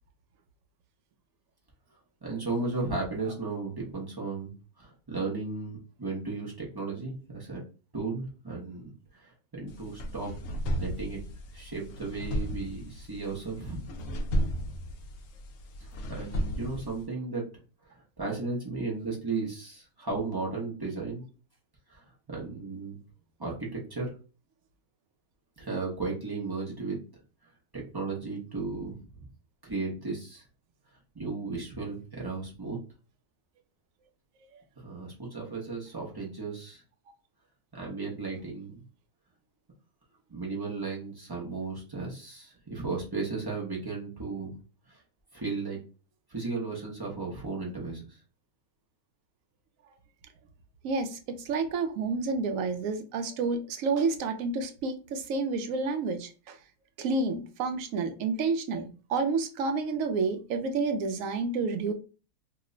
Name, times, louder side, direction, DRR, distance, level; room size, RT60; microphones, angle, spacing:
voice 1, 2.2-7.6 7.9-10.3 10.8-11.2 11.5-13.8 15.8-17.5 18.2-21.2 21.9-23.0 23.4-24.1 25.6-27.0 27.7-29.3 29.6-30.4 31.1-32.8 34.8-36.8 37.7-38.8 40.3-44.5 44.9-45.0 45.3-45.8 46.3-48.2, right 3 dB, 40° right, -4 dB, 0.3 m, -35 dB
sound 1, 9.7-17.0, equal, 70° left, 0.8 m, -34 dB
voice 2, 50.8-56.6 57.0-61.9, right 4 dB, 70° right, 7 dB, 0.8 m, -30 dB
2.8 x 2.1 x 3.7 m, 0.35 s
omnidirectional pair, 1.7 m